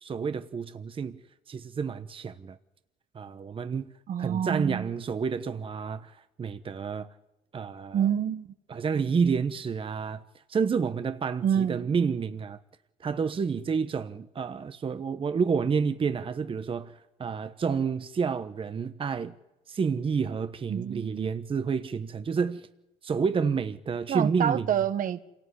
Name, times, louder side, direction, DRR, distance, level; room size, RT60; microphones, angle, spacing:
voice 1, 0.0-1.2 1.5-2.6 3.1-3.9 4.2-7.1 7.5-8.1 8.7-10.2 10.5-12.6 13.0-19.4 19.7-22.7 23.0-24.7, right 5 dB, 30° right, 1.1 m, -29 dB
voice 2, 4.1-4.9 7.9-8.5 11.4-11.9 20.7-21.3 24.1-25.3, right 9 dB, 55° right, 1.3 m, -28 dB
27.0 x 18.0 x 9.9 m
cardioid pair, 110°, 17 cm